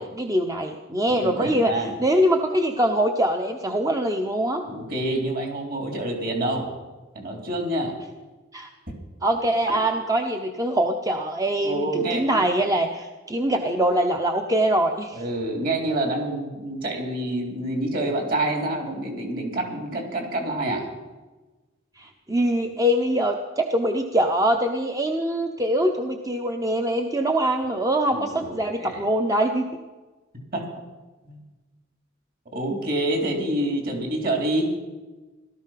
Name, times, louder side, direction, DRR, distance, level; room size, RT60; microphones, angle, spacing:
voice 1, 0.0-4.7 8.5-8.7 9.2-15.2 22.0-29.7, right 1 dB, 20° right, 4 dB, 0.8 m, -23 dB
voice 2, 1.1-1.9 4.7-6.7 7.1-8.0 11.6-12.4 15.1-20.8 28.1-29.0 30.5-30.6 31.3-31.4 32.5-34.6, right 1 dB, 45° right, 2 dB, 3.6 m, -27 dB
17.5 x 13.0 x 5.8 m, 1.2 s
head